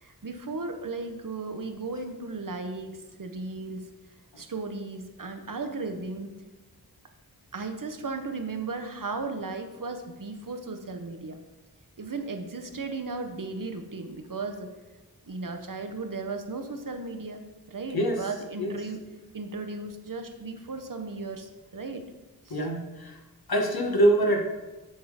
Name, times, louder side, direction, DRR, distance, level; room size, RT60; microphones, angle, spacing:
voice 1, 0.0-3.9 4.4-6.3 7.5-11.4 12.0-14.7 15.3-19.0 19.3-22.0 22.5-22.7, right 3 dB, 60° right, 6 dB, 0.8 m, -36 dB
voice 2, 22.5-23.1 23.5-24.4, right 1 dB, 70° left, 1 dB, 1.1 m, -24 dB
8.8 x 3.7 x 4.8 m, 1.1 s
wide cardioid pair, 50°, 38 cm